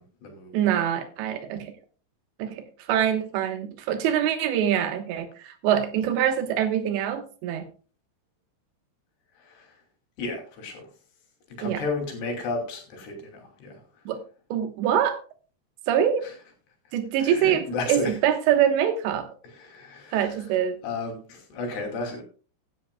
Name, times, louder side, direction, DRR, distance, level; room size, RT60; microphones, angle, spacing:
voice 1, 0.0-0.5 9.4-9.8 10.2-10.9 11.5-13.8 16.2-16.3 17.2-18.2 19.5-20.3 20.8-22.2, left 3 dB, 70° left, 3 dB, 4.7 m, -33 dB
voice 2, 0.5-1.7 2.4-7.7 11.6-11.8 14.1-14.2 14.5-15.2 15.9-16.2 16.9-19.3 20.1-20.8, right 9 dB, 80° right, 8 dB, 3.4 m, -24 dB
16.5 x 10.5 x 2.2 m, 0.37 s
omnidirectional pair, 5.0 m